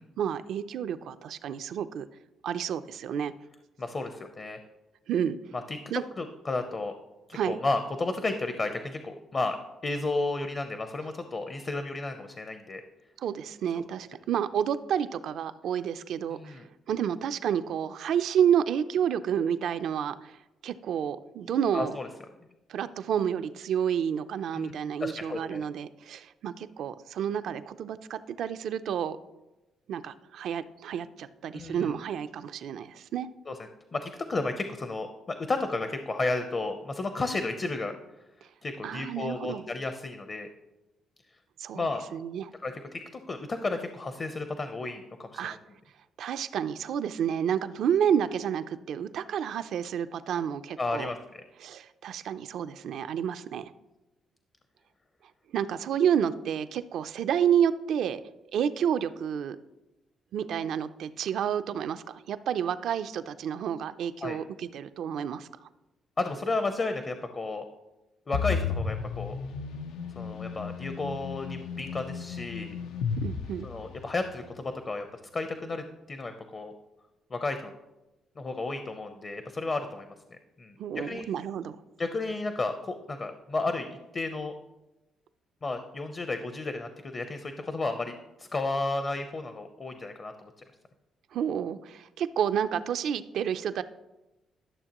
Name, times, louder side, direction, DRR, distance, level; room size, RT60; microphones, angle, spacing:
voice 1, 0.2-2.1 2.4-3.3 5.1-5.4 5.9-6.0 7.3-7.6 13.2-16.6 16.9-20.4 20.6-22.0 22.7-29.2 29.9-33.3 38.8-39.7 41.6-42.5 45.4-45.6 46.2-51.1 51.6-53.7 55.5-58.2 58.5-59.6 60.3-65.5 73.2-73.7 80.8-81.8 91.3-93.8, right 8 dB, 75° right, 11 dB, 0.4 m, -30 dB
voice 2, 3.8-4.6 5.7-5.8 6.2-6.9 7.3-9.6 9.8-12.8 16.3-16.6 21.7-22.1 24.5-24.7 25.0-25.6 31.5-32.0 33.5-33.6 33.9-37.9 38.6-40.5 41.7-42.0 42.6-45.5 50.8-51.4 64.2-64.4 66.2-67.7 68.3-69.4 70.2-72.7 73.6-75.1 75.3-76.8 77.3-77.7 78.4-80.1 80.6-81.3 82.0-83.9 84.1-84.5 85.6-90.5, left 3 dB, 35° left, 7 dB, 0.6 m, -32 dB
sound 1, 68.3-74.3, left 6 dB, 85° left, 0.4 m, -34 dB
12.0 x 6.6 x 2.9 m, 1.0 s
cardioid pair, 90°, 0 cm